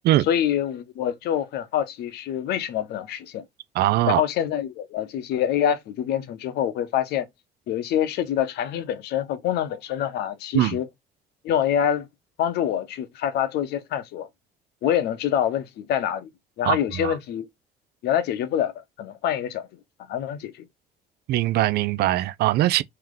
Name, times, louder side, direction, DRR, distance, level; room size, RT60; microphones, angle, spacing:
voice 1, 0.2-3.4 4.1-7.3 7.7-10.9 11.4-12.1 12.4-14.3 14.8-16.3 16.6-17.5 18.0-19.7 20.1-20.7, left 10 dB, 75° left, 0.7 m, -26 dB
voice 2, 3.8-4.2 10.5-10.8 16.7-17.2 21.3-22.8, right 15 dB, 70° right, 0.4 m, -21 dB
3.3 x 2.8 x 3.8 m
cardioid pair, 110°, 17 cm